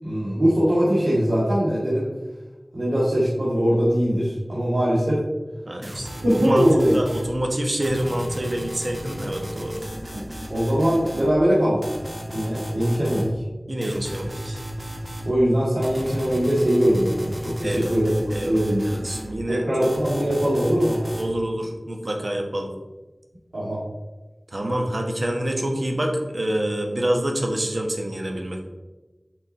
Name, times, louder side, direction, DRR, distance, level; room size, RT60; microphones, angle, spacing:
voice 1, 0.0-2.1 2.7-5.2 6.2-7.0 10.1-11.8 12.3-13.3 15.2-18.1 18.4-18.8 19.5-21.0 23.5-23.8, equal, 90° right, -10 dB, 2.2 m, -21 dB
voice 2, 5.7-6.7 6.9-9.8 13.7-14.6 17.6-19.9 21.2-22.7 24.5-28.6, right 1 dB, 60° right, 2 dB, 1.1 m, -27 dB
sound 1, 5.8-7.3 7.8-11.3 11.8-13.3 13.8-15.3 15.8-19.3 19.8-21.3, equal, 15° right, 1.6 m, -35 dB
6.0 x 5.2 x 4.1 m, 1.2 s
wide cardioid pair, 45°, 0 cm